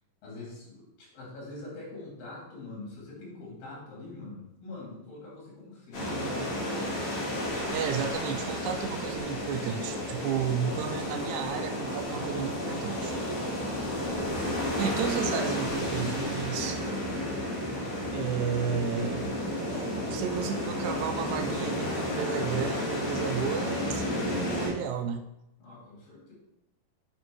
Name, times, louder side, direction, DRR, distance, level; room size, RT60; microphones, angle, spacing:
voice 1, 0.2-7.1 17.5-18.3 25.6-26.3, left 2 dB, 80° left, -4 dB, 4.4 m, -44 dB
sound 1, 5.9-24.7, left 1 dB, 55° left, 4.2 m, -32 dB
voice 2, 7.7-13.1 14.8-16.8 18.1-19.3 19.6-25.2, right 7 dB, 80° right, 8 dB, 1.8 m, -33 dB
7.6 x 5.2 x 4.7 m, 0.84 s
omnidirectional pair, 3.9 m